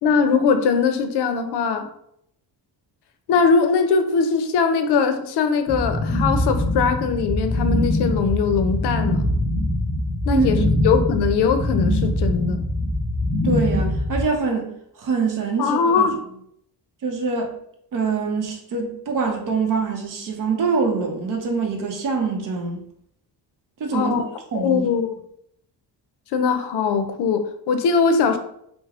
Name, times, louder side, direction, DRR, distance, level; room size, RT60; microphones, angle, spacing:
voice 1, 0.0-1.9 3.3-9.2 10.3-10.6 10.8-12.6 15.6-16.1 23.9-24.3 24.6-25.1 26.3-28.4, left 5 dB, 80° left, 0.5 m, -21 dB
sound 1, 5.7-14.2, left 1 dB, 20° right, 1.0 m, -23 dB
voice 2, 13.4-14.7 15.0-16.1 17.0-17.5 17.9-22.8 23.8-24.2 24.5-24.9, right 4 dB, 55° right, 0.7 m, -24 dB
3.3 x 2.0 x 3.5 m
wide cardioid pair, 180°, 40 cm